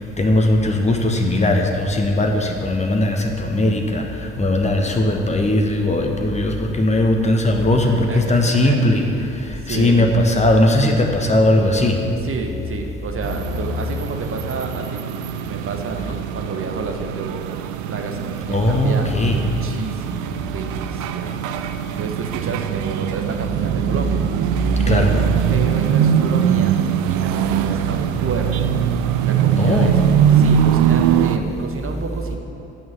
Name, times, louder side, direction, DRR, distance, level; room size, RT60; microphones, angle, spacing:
voice 1, 0.2-4.0 4.4-9.0 9.7-12.0 18.5-19.4 24.9-25.1 29.6-29.9, left 1 dB, 20° left, 3 dB, 1.3 m, -18 dB
voice 2, 7.8-8.8 9.6-10.1 12.2-15.0 15.5-17.5 17.9-24.2 24.8-25.1 25.5-26.7 27.0-28.7 29.2-32.4, right 4 dB, 40° right, 3 dB, 1.3 m, -30 dB
sound 1, 13.2-31.4, right 9 dB, 55° right, 0.5 m, -22 dB
8.7 x 6.3 x 8.3 m, 2.7 s
figure-of-eight pair, 45°, 35 cm